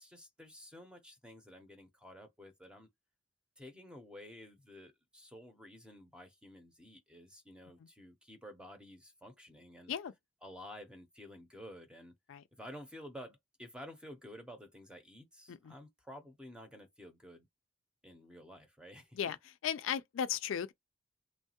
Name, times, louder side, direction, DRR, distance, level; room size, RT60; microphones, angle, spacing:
voice 1, 0.0-2.9 3.6-9.9 10.4-12.1 12.5-17.5 18.0-19.3, equal, 5° right, 0.6 m, -52 dB
voice 2, 19.6-20.7, left 8 dB, 70° left, 0.4 m, -36 dB
3.1 x 2.2 x 2.8 m
head